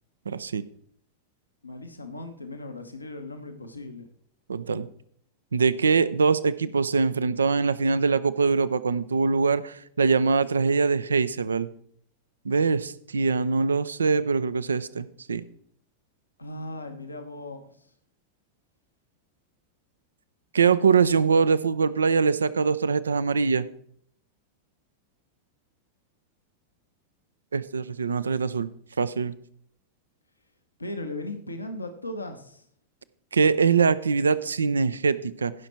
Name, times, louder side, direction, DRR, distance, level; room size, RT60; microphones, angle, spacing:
voice 1, 0.3-0.6 4.5-4.9 5.5-11.7 12.4-15.4 20.5-23.7 27.5-28.7 29.0-29.3 33.3-35.5, right 5 dB, 70° right, 16 dB, 0.6 m, -23 dB
voice 2, 1.6-4.1 16.4-17.9 20.7-21.0 30.8-32.6, left 1 dB, 80° left, 5 dB, 1.1 m, -37 dB
16.0 x 6.1 x 4.4 m, 0.64 s
figure-of-eight pair, 90°, 0 cm